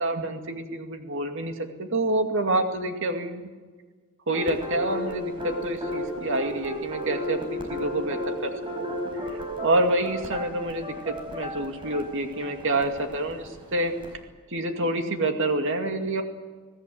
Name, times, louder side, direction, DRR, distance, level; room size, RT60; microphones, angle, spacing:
voice 1, 0.0-3.5 4.3-8.5 9.2-13.9 14.5-16.2, right 1 dB, 60° right, 5 dB, 2.3 m, -27 dB
sound 1, 4.3-14.1, equal, 25° right, 5.2 m, -34 dB
26.5 x 17.5 x 7.8 m, 1.4 s
head